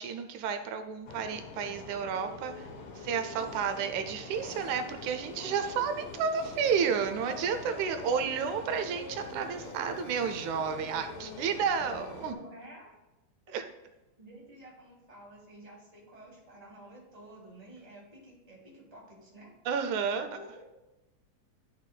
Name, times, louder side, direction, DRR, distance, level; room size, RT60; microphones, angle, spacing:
voice 1, 0.0-2.7 3.0-12.4 13.5-13.6 19.7-20.3, right 6 dB, 85° right, 7 dB, 2.1 m, -31 dB
sound 1, 1.1-12.3, left 3 dB, 60° left, 1.6 m, -44 dB
voice 2, 12.2-12.9 13.7-13.8 14.2-19.5 20.1-20.5, right 1 dB, 15° right, -4 dB, 2.4 m, -51 dB
11.5 x 6.4 x 2.3 m, 1.0 s
omnidirectional pair, 3.3 m